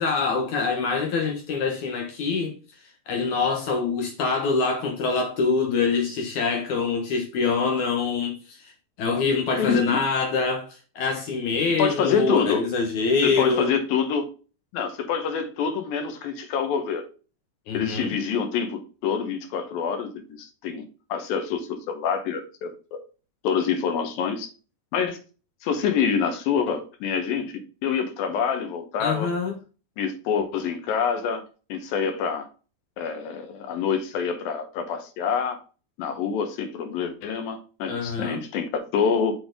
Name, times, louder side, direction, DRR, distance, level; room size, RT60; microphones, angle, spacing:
voice 1, 0.0-2.5 3.1-8.7 9.0-13.7 17.7-18.2 29.0-29.5 37.9-38.4, left 4 dB, 65° left, 2.2 m, -25 dB
voice 2, 9.6-10.0 11.8-12.6 13.2-14.3 14.7-17.0 17.7-23.0 23.4-24.5 24.9-25.2 25.6-27.5 27.8-29.3 30.0-31.4 31.7-32.5 33.0-35.6 36.0-39.3, left 6 dB, 85° left, 2.9 m, -26 dB
6.6 x 4.2 x 5.0 m
omnidirectional pair, 4.0 m